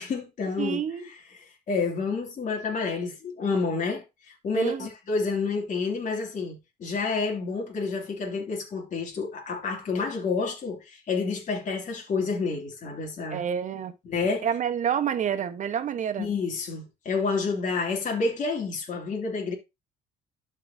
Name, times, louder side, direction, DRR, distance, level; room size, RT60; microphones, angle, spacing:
voice 1, 0.0-13.4 14.0-14.5 16.2-19.5, left 4 dB, 45° left, 2.8 m, -29 dB
voice 2, 0.6-1.1 4.5-4.8 13.3-13.9 14.4-16.3, right 8 dB, 45° right, 1.2 m, -28 dB
12.0 x 4.9 x 2.7 m
cardioid pair, 110°, 17 cm